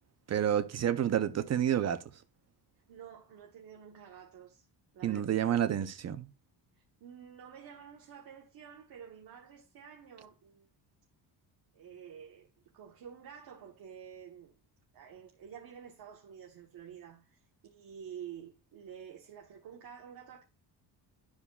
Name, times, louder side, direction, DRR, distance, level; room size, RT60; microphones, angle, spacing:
voice 1, 0.3-2.1 5.0-6.3, right 10 dB, 40° right, 0.7 m, -29 dB
voice 2, 2.9-4.6 4.9-5.2 7.0-10.7 11.7-14.6 14.9-20.4, right 8 dB, 60° right, 1.4 m, -50 dB
12.5 x 4.8 x 2.4 m
cardioid pair, 150°, 41 cm